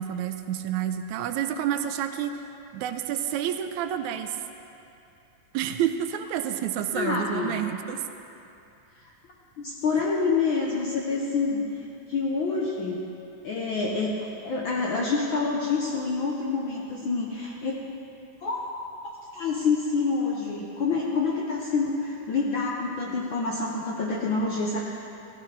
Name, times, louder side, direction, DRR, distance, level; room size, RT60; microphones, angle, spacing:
voice 1, 0.0-2.3 2.7-4.4 5.5-8.0, right 10 dB, 80° right, 8 dB, 1.9 m, -29 dB
voice 2, 6.9-7.6 8.9-9.1 9.6-11.6 12.1-13.0 13.4-17.8 18.4-18.6 19.0-24.8, left 4 dB, 70° left, -3 dB, 1.1 m, -27 dB
15.5 x 14.5 x 3.3 m, 2.8 s
omnidirectional pair, 3.4 m